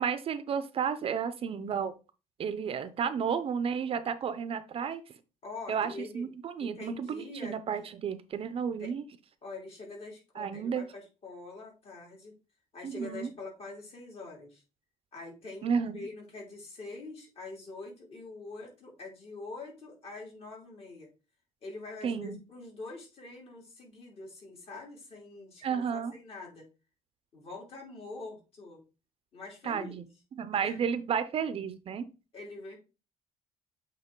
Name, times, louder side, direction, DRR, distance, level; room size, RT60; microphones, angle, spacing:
voice 1, 0.0-1.9 2.4-5.0 5.7-9.0 10.4-10.8 12.8-13.3 15.6-16.1 22.0-22.4 25.6-26.1 29.6-30.0 30.3-32.1, right 7 dB, 45° right, 12 dB, 0.5 m, -32 dB
voice 2, 5.4-6.3 6.6-7.6 8.8-9.0 9.4-12.3 12.7-14.6 15.1-21.1 21.6-26.7 27.3-28.8 29.3-30.0 30.5-30.8 32.3-32.8, left 3 dB, 45° left, -1 dB, 2.8 m, -44 dB
8.0 x 3.4 x 3.7 m, 0.31 s
cardioid pair, 135°, 14 cm